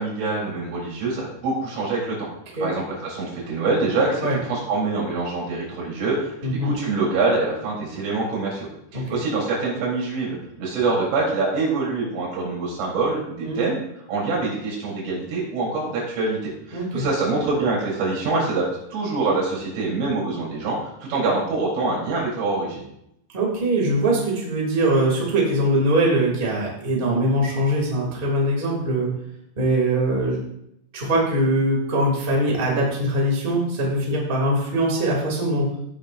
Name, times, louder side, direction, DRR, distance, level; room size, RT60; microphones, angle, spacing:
voice 1, 0.0-2.3 2.6-8.7 8.9-13.8 14.1-16.4 16.7-22.9, right 3 dB, 90° right, -4 dB, 6.6 m, -25 dB
voice 2, 16.7-17.1 23.3-29.1 29.6-30.4 30.9-35.7, right 1 dB, 15° right, -3 dB, 2.2 m, -22 dB
16.0 x 9.1 x 2.7 m, 0.76 s
omnidirectional pair, 5.5 m